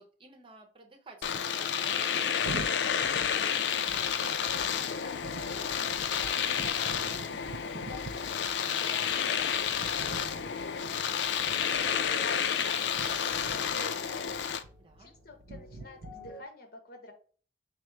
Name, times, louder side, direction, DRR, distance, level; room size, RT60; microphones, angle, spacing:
voice 1, 0.0-2.9 14.8-15.1, right 3 dB, 30° right, 2 dB, 0.8 m, -55 dB
Domestic sounds home sounds, 1.2-14.6, left 8 dB, 75° left, 0.4 m, -30 dB
sound 1, 2.4-16.3, right 3 dB, 80° right, 0.4 m, -46 dB
voice 2, 4.0-8.2 8.8-11.3 11.6-14.3 15.0-17.1, left 2 dB, 60° left, 4 dB, 1.0 m, -49 dB
sound 2, 10.8-16.4, equal, 40° left, 1.6 m, -52 dB
5.0 x 2.0 x 4.5 m, 0.42 s
head